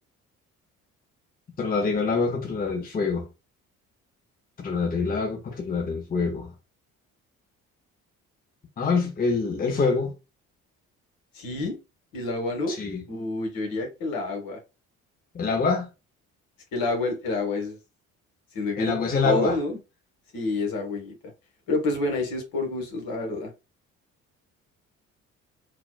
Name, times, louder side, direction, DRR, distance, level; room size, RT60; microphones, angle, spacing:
voice 1, 1.6-3.3 4.6-6.5 8.8-10.1 12.7-13.0 15.3-15.9 18.8-19.6, left 4 dB, 20° left, 0.8 m, -25 dB
voice 2, 11.3-11.8 12.1-12.8 13.1-14.6 16.7-17.8 18.5-19.8 20.3-21.1 21.7-23.5, left 2 dB, 55° left, 1.3 m, -28 dB
4.0 x 2.2 x 2.3 m
figure-of-eight pair, 50°, 41 cm